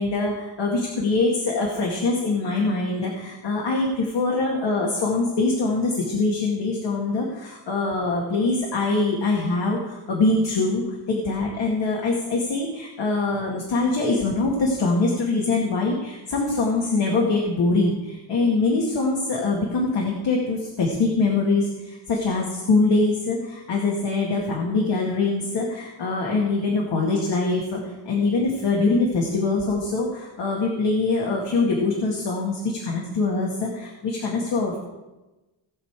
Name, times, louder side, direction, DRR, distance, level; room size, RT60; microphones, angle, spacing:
voice 1, 0.0-34.8, left 3 dB, 75° left, -2 dB, 2.2 m, -23 dB
18.5 x 6.7 x 4.8 m, 1.1 s
wide cardioid pair, 160°, 43 cm